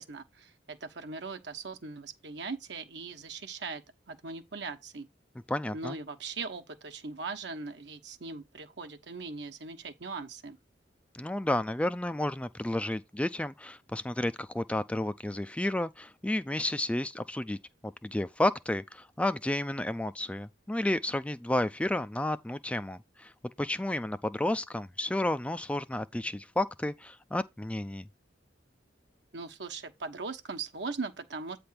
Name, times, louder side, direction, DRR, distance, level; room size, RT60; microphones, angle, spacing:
voice 1, 0.0-5.1 5.7-10.6 29.3-31.6, right 4 dB, 65° right, 1.2 m, -40 dB
voice 2, 5.5-6.0 11.1-17.6 17.8-23.3 23.6-28.1, left 1 dB, 5° left, 0.3 m, -31 dB
8.7 x 3.4 x 5.8 m
head